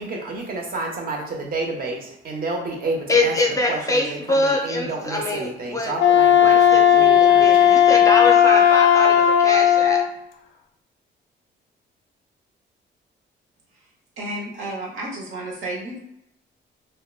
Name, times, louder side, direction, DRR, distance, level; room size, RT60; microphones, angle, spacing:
voice 1, 0.0-7.8, right 2 dB, 50° right, 1 dB, 0.7 m, -30 dB
voice 2, 3.1-5.9 6.4-10.0, left 2 dB, 15° left, 1 dB, 0.5 m, -24 dB
Wind instrument woodwind instrument, 5.9-10.1, left 9 dB, 75° left, 0.4 m, -15 dB
voice 3, 14.2-16.0, right 1 dB, 80° right, -3 dB, 0.9 m, -31 dB
2.8 x 2.2 x 2.3 m, 0.80 s
cardioid pair, 90°, 20 cm